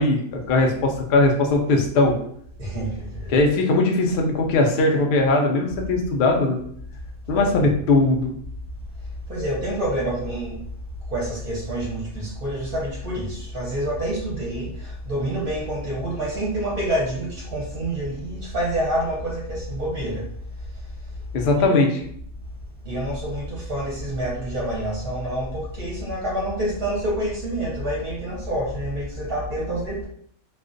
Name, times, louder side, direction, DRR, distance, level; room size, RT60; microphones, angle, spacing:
voice 1, 0.0-2.2 3.3-6.6 7.3-8.3 21.3-21.9, left 2 dB, 90° left, 2 dB, 0.4 m, -19 dB
voice 2, 2.6-3.3 7.3-7.5 9.3-10.5 11.1-20.2 21.6-21.8 22.8-30.1, right 1 dB, 50° right, -5 dB, 0.7 m, -27 dB
2.4 x 2.2 x 2.5 m, 0.66 s
omnidirectional pair, 1.4 m